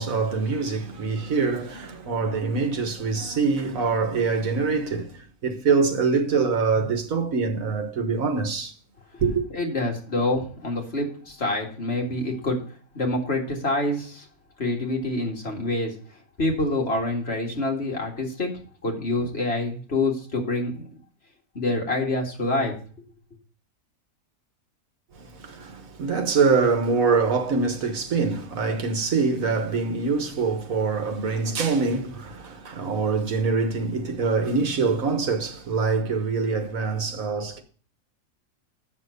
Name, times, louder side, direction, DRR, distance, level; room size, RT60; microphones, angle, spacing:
voice 1, 0.0-8.7 9.2-9.4 25.2-37.6, right 4 dB, 70° right, 1.6 m, -24 dB
voice 2, 9.5-12.6 12.9-14.2 14.6-15.9 16.4-18.5 18.8-20.8 21.5-22.7, left 2 dB, 45° left, 2.2 m, -26 dB
7.7 x 6.2 x 6.5 m
omnidirectional pair, 1.5 m